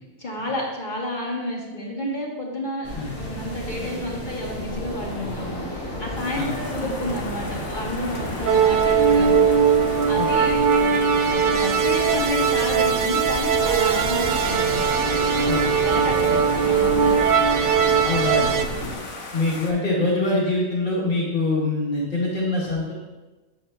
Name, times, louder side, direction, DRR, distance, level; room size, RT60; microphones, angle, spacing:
voice 1, 0.2-2.9 3.2-9.4 10.1-14.8 15.8-17.5, left 1 dB, 40° left, -3 dB, 1.3 m, -30 dB
sound 1, 2.8-19.0, equal, 10° left, 2.5 m, -31 dB
sound 2, 6.1-19.7, left 3 dB, 85° left, 1.5 m, -38 dB
sound 3, 8.5-18.6, right 7 dB, 65° right, 0.5 m, -20 dB
voice 2, 10.2-10.5 15.5-15.7 18.0-18.6 19.3-22.9, left 2 dB, 70° left, -10 dB, 2.6 m, -24 dB
9.1 x 7.2 x 2.2 m, 1.1 s
omnidirectional pair, 1.4 m